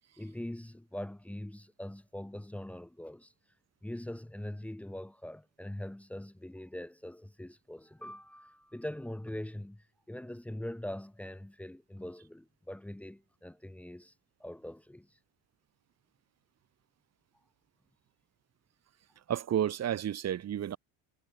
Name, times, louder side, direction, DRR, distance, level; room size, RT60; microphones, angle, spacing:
voice 1, 0.2-3.3 3.8-14.1 14.4-15.2, left 1 dB, 5° left, 3.1 m, -42 dB
voice 2, 19.3-20.8, right 10 dB, 40° right, 4.5 m, -31 dB
cardioid pair, 160°, 41 cm